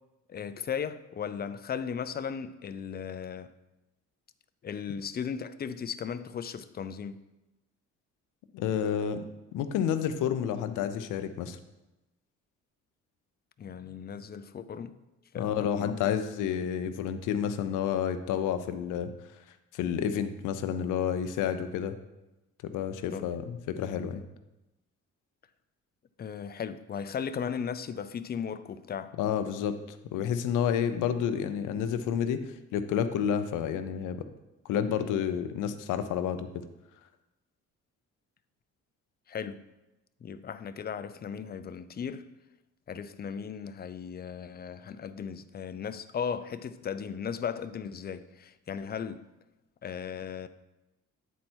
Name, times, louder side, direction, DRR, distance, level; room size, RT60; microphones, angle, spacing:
voice 1, 0.3-3.5 4.6-7.2 13.6-15.0 15.3-15.9 23.1-23.2 26.2-29.1 39.3-39.6 40.2-42.2 42.9-49.2 49.8-50.5, left 7 dB, 30° left, 0.5 m, -36 dB
voice 2, 8.5-9.2 9.5-11.6 15.4-19.1 19.7-21.9 22.6-24.2 29.2-29.7 30.1-32.4 32.7-34.2 34.7-36.5, left 8 dB, 90° left, 0.6 m, -30 dB
9.2 x 4.3 x 4.5 m
cardioid pair, 90°, 30 cm